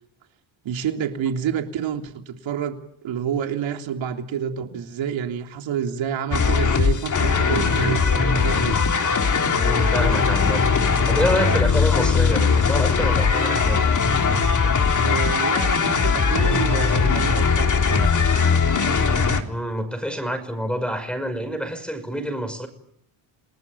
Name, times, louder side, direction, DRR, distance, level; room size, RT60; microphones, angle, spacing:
voice 1, 0.6-8.8 15.0-18.2, right 8 dB, 70° right, 3.4 m, -28 dB
sound 1, 6.3-19.4, left 5 dB, 40° left, 3.5 m, -20 dB
voice 2, 9.6-10.7 11.1-13.9 19.5-22.7, equal, ahead, 5.8 m, -27 dB
29.5 x 20.0 x 8.8 m
cardioid pair, 105°, 48 cm